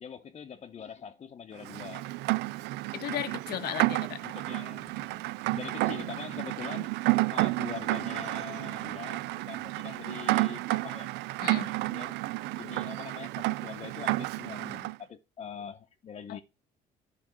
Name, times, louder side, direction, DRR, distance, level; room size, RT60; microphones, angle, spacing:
voice 1, 0.0-2.0 4.2-5.2 5.5-6.9 7.3-11.1 11.6-12.1 12.6-16.4, left 7 dB, 40° left, 0.8 m, -43 dB
Rain, 1.6-14.9, right 20 dB, 85° right, 0.4 m, -31 dB
voice 2, 2.9-4.2 11.4-11.8 16.3-16.4, left 12 dB, 65° left, 0.8 m, -35 dB
11.0 x 4.2 x 6.0 m
cardioid pair, 110°, 17 cm